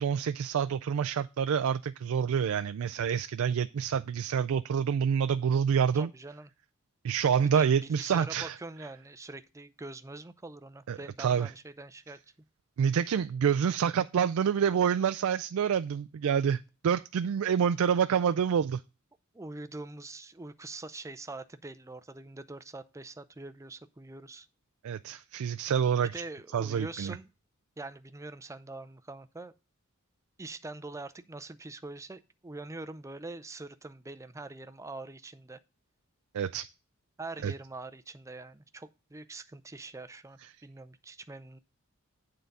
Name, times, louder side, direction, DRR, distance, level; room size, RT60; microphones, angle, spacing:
voice 1, 0.0-6.1 7.0-8.6 10.9-11.5 12.8-18.8 24.8-26.1 26.5-27.2 36.3-36.7 37.4-37.5, right 7 dB, 75° right, 0.4 m, -27 dB
voice 2, 5.9-6.5 7.5-12.2 19.3-24.5 26.1-27.3 27.8-29.5 30.4-35.6 37.2-41.6, right 2 dB, 15° right, 0.5 m, -44 dB
9.2 x 3.9 x 6.6 m
head